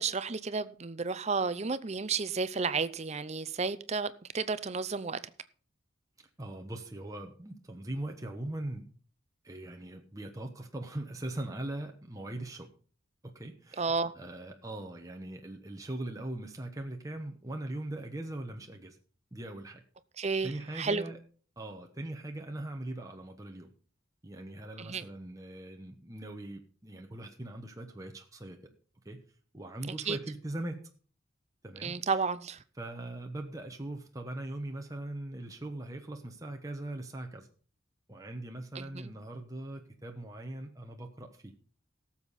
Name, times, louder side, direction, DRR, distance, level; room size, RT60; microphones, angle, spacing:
voice 1, 0.0-5.2 13.8-14.1 20.2-21.0 24.8-25.0 30.1-30.2 31.8-32.6 38.7-39.1, right 4 dB, 30° right, 0.6 m, -32 dB
voice 2, 6.4-8.9 9.4-12.7 13.2-19.0 19.3-19.8 20.4-21.2 21.6-23.7 24.2-28.6 29.0-29.2 29.5-30.8 31.6-32.2 32.8-37.5 38.1-41.5, right 1 dB, 15° right, 1.0 m, -40 dB
17.5 x 7.2 x 4.1 m
head